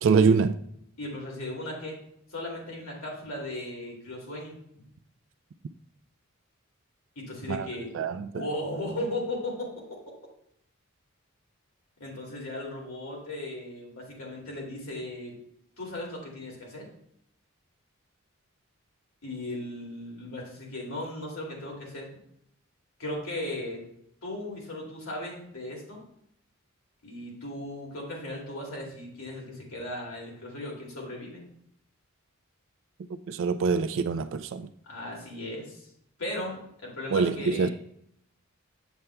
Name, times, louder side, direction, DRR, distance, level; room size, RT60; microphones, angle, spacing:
voice 1, 0.0-0.6 7.5-7.7 7.9-8.5 33.3-34.7 37.1-37.7, right 5 dB, 60° right, 0.3 m, -24 dB
voice 2, 1.0-2.0 2.3-4.6 7.2-7.9 8.3-9.7 12.0-15.3 15.8-16.9 19.2-22.1 23.0-23.8 24.2-26.0 27.0-31.4 34.9-35.8 36.2-37.7, left 1 dB, 80° left, 2.4 m, -36 dB
7.7 x 7.1 x 2.2 m
head